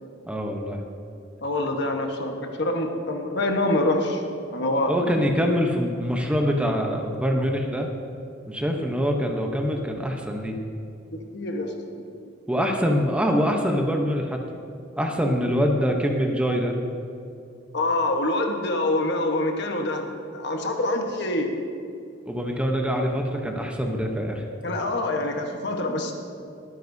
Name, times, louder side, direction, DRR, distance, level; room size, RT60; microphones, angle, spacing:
voice 1, 0.3-0.8 4.9-7.9 8.5-10.6 12.5-14.4 15.0-16.8 22.3-24.4, equal, 5° right, 2 dB, 0.8 m, -24 dB
voice 2, 1.4-4.2 4.5-4.9 11.1-11.8 12.2-12.3 12.6-12.7 17.7-20.0 20.3-21.5 24.6-26.1, left 2 dB, 60° left, 3 dB, 1.2 m, -25 dB
21.5 x 9.5 x 2.7 m, 2.5 s
head